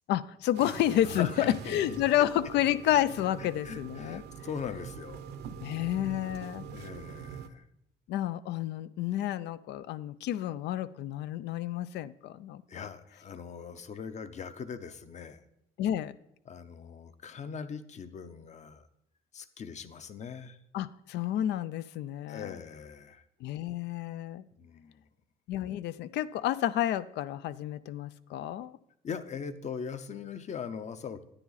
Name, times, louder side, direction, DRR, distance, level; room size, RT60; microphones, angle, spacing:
voice 1, 0.1-4.2 5.6-6.7 8.1-12.8 15.8-16.2 20.7-22.5 23.4-24.4 25.5-28.8, left 12 dB, 75° left, 16 dB, 0.5 m, -30 dB
sound 1, 0.5-7.5, right 8 dB, 70° right, 0.8 m, -44 dB
voice 2, 1.1-1.9 3.4-5.2 6.7-7.6 12.7-15.4 16.5-18.8 19.3-20.6 22.3-23.2 24.6-25.0 29.0-31.2, left 6 dB, 40° left, 12 dB, 0.7 m, -40 dB
9.9 x 9.6 x 4.0 m, 0.79 s
cardioid pair, 100°, 18 cm